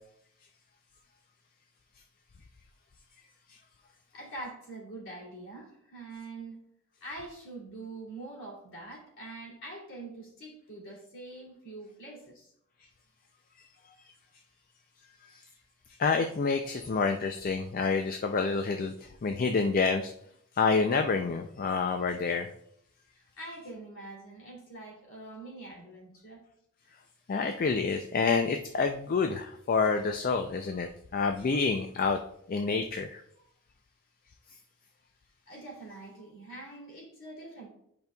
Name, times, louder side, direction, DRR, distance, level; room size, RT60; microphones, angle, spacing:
voice 1, 4.1-6.6 7.0-12.5 23.2-26.4 35.5-37.7, right 2 dB, 60° left, -2 dB, 2.8 m, -44 dB
voice 2, 16.0-18.9 19.2-20.1 20.6-22.5 27.3-32.2 32.5-33.2, left 4 dB, 40° left, 6 dB, 0.4 m, -28 dB
10.5 x 5.2 x 2.3 m, 0.71 s
head